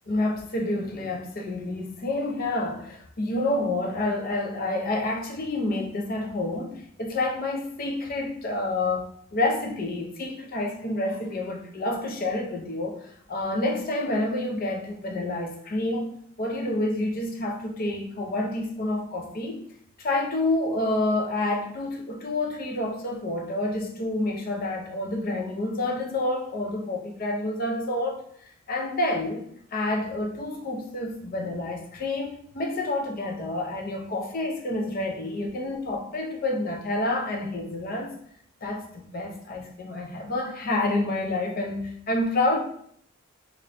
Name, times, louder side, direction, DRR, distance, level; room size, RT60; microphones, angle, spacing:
voice 1, 0.1-16.1 16.4-19.6 20.0-28.2 28.7-29.4 29.7-38.1 38.6-42.6, left 2 dB, 45° left, 1 dB, 0.5 m, -28 dB
2.9 x 2.5 x 3.2 m, 0.65 s
head